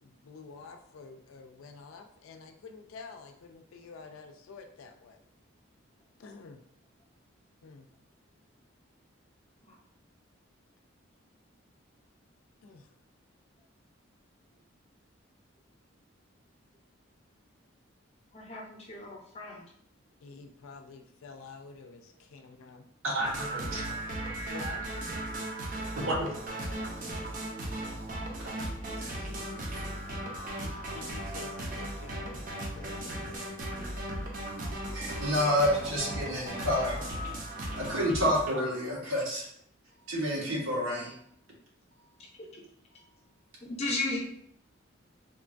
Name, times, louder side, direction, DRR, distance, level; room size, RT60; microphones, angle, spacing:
voice 1, 0.0-5.2 6.2-6.6 7.6-7.9 12.6-12.9 20.2-22.9 23.6-24.0 24.5-24.9 30.6-33.4 36.9-37.1, left 4 dB, 85° left, 5 dB, 0.4 m, -49 dB
voice 2, 18.3-19.6 42.4-42.6 43.6-44.2, left 2 dB, 30° left, -2 dB, 0.5 m, -35 dB
voice 3, 23.0-23.8 26.0-26.3 28.4-28.7 29.0-29.8 34.6-37.0 37.5-39.5 40.1-41.2, equal, 80° right, -3 dB, 0.9 m, -30 dB
sound 1, 23.2-38.5, right 1 dB, 40° right, 0.5 m, -37 dB
3.0 x 2.2 x 2.5 m, 0.68 s
head